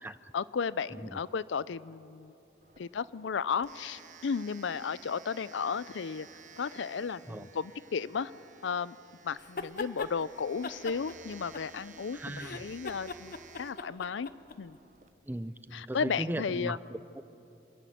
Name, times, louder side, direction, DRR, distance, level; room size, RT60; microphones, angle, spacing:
voice 1, 0.0-2.3 2.8-6.3 6.6-8.3 8.6-9.0 9.2-14.3 14.6-14.8 15.7-16.8, left 6 dB, 85° left, 18 dB, 0.5 m, -34 dB
Domestic sounds home sounds, 2.6-15.1, right 7 dB, 40° right, 0.8 m, -55 dB
sound 1, 9.4-10.1 10.6-12.0 12.3-14.6, left 4 dB, 50° left, 0.7 m, -39 dB
voice 2, 12.1-12.7 15.3-17.2, right 1 dB, 10° right, 13 dB, 0.4 m, -38 dB
26.5 x 11.0 x 9.3 m, 2.8 s
head